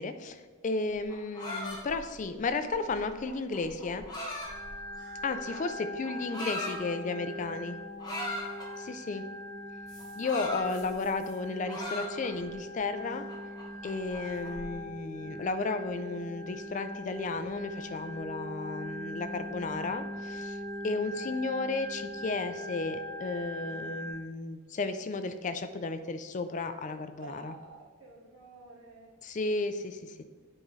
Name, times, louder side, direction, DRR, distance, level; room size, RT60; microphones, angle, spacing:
voice 1, 0.0-4.0 5.2-5.7 6.0-7.8 8.8-9.2 10.2-13.2 13.8-27.5 29.2-30.2, left 3 dB, 35° left, 9 dB, 0.3 m, -33 dB
sound 1, 0.9-5.3 6.0-6.8 8.0-8.7 9.9-11.3 11.7-12.5 13.0-14.6, left 1 dB, 20° left, 1.3 m, -39 dB
Organ, 4.4-24.1, equal, 35° right, 2.0 m, -41 dB
voice 2, 6.0-7.8 20.8-20.9 27.1-29.1, right 3 dB, 70° right, -2 dB, 1.4 m, -52 dB
8.9 x 4.7 x 3.1 m, 1.4 s
head